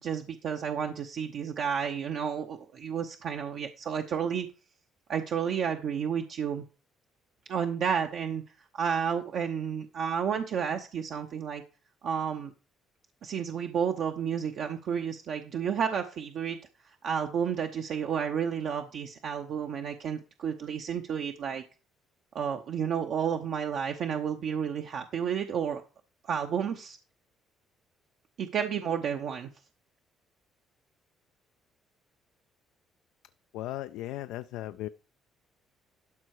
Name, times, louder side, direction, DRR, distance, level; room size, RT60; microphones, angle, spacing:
voice 1, 0.0-4.5 5.1-6.6 7.5-8.4 8.7-11.6 12.0-12.5 13.2-16.6 17.0-21.6 22.3-25.8 26.2-27.0 28.4-29.5, right 7 dB, 65° right, 0.8 m, -31 dB
voice 2, 33.5-34.9, left 15 dB, 85° left, 0.3 m, -36 dB
12.0 x 4.6 x 4.8 m
supercardioid pair, 70°, 0 cm